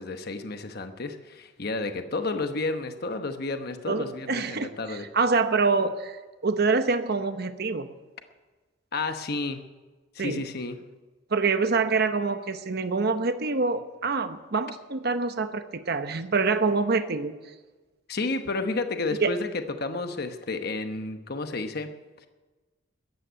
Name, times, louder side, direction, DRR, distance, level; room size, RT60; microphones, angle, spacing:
voice 1, 0.0-5.1 8.9-9.6 10.1-10.8 18.1-21.9, left 3 dB, 55° left, 7 dB, 1.0 m, -31 dB
voice 2, 3.9-7.9 10.2-10.4 11.3-17.4 19.2-19.4, right 4 dB, 55° right, 9 dB, 0.9 m, -26 dB
14.5 x 9.8 x 9.1 m, 1.2 s
head